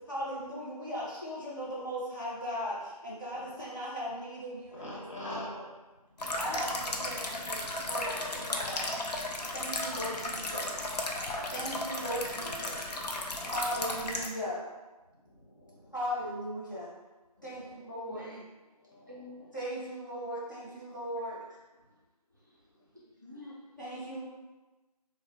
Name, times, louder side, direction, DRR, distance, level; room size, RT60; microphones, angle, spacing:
voice 1, 0.0-5.6 6.3-8.9 9.5-10.9 11.5-12.8 13.5-14.6 15.9-16.9 17.4-18.3 19.5-21.4 23.8-24.2, equal, 30° left, -9 dB, 0.5 m, -38 dB
voice 2, 3.3-3.6 4.7-6.3 13.2-13.5 15.1-15.9 17.4-17.9 18.8-19.5, left 1 dB, 50° left, -6 dB, 0.9 m, -47 dB
sound 1, 6.2-14.3, left 2 dB, 85° left, 0.5 m, -35 dB
voice 3, 18.0-19.6 21.5-21.6 21.9-22.0 22.3-22.8 23.2-23.8, left 1 dB, 30° right, -7 dB, 0.4 m, -50 dB
2.9 x 2.0 x 2.6 m, 1.2 s
figure-of-eight pair, 170°, 20 cm